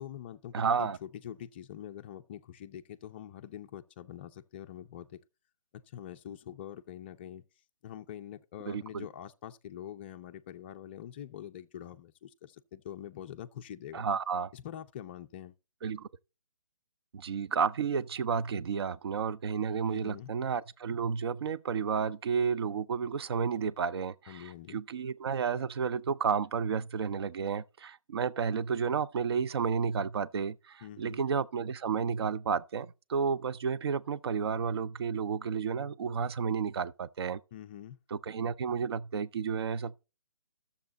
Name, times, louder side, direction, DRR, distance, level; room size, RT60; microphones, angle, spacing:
voice 1, 0.0-5.2 5.7-7.4 7.8-14.1 14.5-15.5 19.9-20.3 24.3-24.8 30.8-31.2 37.5-38.0, left 10 dB, 20° left, 0.4 m, -45 dB
voice 2, 0.5-1.0 8.7-9.1 13.9-14.5 15.8-16.1 17.1-37.4 38.1-40.0, right 6 dB, 50° right, 0.5 m, -31 dB
12.5 x 7.1 x 4.0 m
figure-of-eight pair, 150°, 17 cm